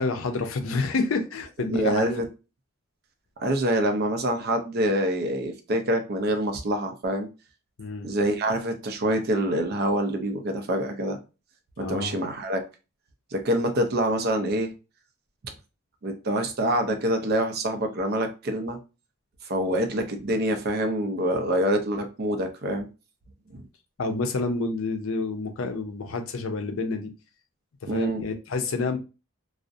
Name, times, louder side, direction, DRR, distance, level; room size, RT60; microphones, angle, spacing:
voice 1, 0.0-2.2 7.8-8.1 11.8-12.1 24.0-27.1 27.8-29.0, left 3 dB, 70° left, 6 dB, 0.5 m, -28 dB
voice 2, 1.7-2.3 3.4-7.3 8.0-11.2 11.8-12.6 13.3-14.7 16.0-18.8 19.4-22.9 23.5-23.7 27.9-28.2, right 1 dB, 50° right, 6 dB, 0.5 m, -26 dB
2.4 x 2.0 x 2.6 m, 0.30 s
head